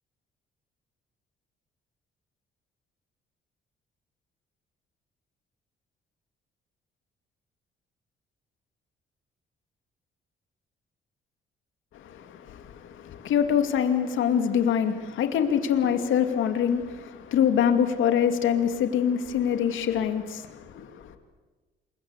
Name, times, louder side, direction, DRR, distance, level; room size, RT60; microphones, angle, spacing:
voice 1, 11.9-21.2, left 8 dB, 80° left, 2.4 m, -25 dB
27.5 x 22.0 x 8.2 m
cardioid pair, 90°, 20 cm